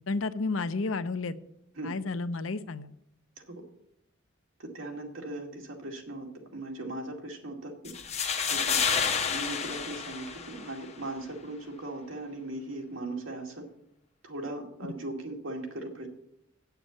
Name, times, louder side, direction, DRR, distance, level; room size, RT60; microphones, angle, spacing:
voice 1, 0.1-1.4 1.8-2.9, left 3 dB, 75° left, 12 dB, 0.7 m, -31 dB
voice 2, 4.6-6.3 6.5-7.9 8.5-8.8 9.3-13.6 14.2-16.1, right 2 dB, 75° right, 2 dB, 2.3 m, -38 dB
sound 1, 7.9-10.9, left 6 dB, 35° left, 1.1 m, -30 dB
8.7 x 6.9 x 8.0 m, 0.78 s
head